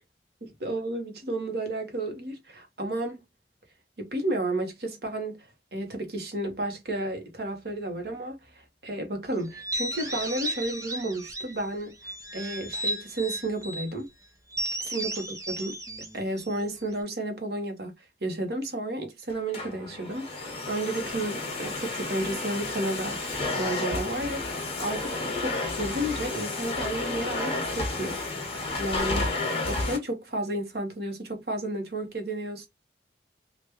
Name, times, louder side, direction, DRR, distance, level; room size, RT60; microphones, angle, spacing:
voice 1, 0.4-3.2 4.0-8.4 8.8-14.1 14.8-15.8 16.1-17.9 18.2-28.2 28.4-32.7, right 1 dB, 65° right, 1.1 m, -32 dB
sound 1, 9.5-11.6 12.0-13.9 14.5-17.0, right 1 dB, 20° right, 0.7 m, -34 dB
Domestic sounds home sounds, 19.3-30.0, left 2 dB, 35° left, 1.0 m, -31 dB
3.4 x 2.5 x 3.0 m
head